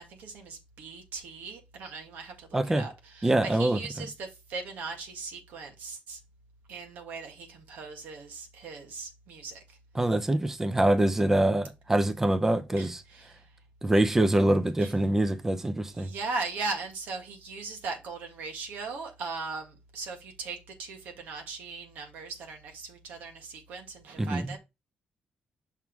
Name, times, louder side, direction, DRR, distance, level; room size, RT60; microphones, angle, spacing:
voice 1, 0.0-6.2 6.7-9.8 12.8-13.5 14.8-14.9 15.9-24.6, right 4 dB, 85° right, 1.7 m, -39 dB
voice 2, 2.5-2.8 3.2-3.8 9.9-13.0 13.8-16.1 24.2-24.6, right 1 dB, 15° right, 0.6 m, -24 dB
6.0 x 3.7 x 4.6 m
cardioid pair, 120°, 3 cm